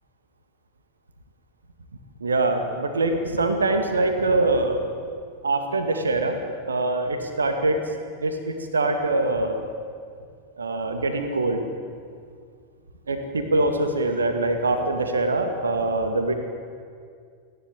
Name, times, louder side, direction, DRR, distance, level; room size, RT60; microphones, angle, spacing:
voice 1, 2.2-4.9 5.4-6.4 6.7-7.8 8.2-9.6 10.6-11.6 13.1-16.3, right 2 dB, 75° right, 6 dB, 2.3 m, -23 dB
28.0 x 11.5 x 9.2 m, 2.2 s
figure-of-eight pair, 90°, 0 cm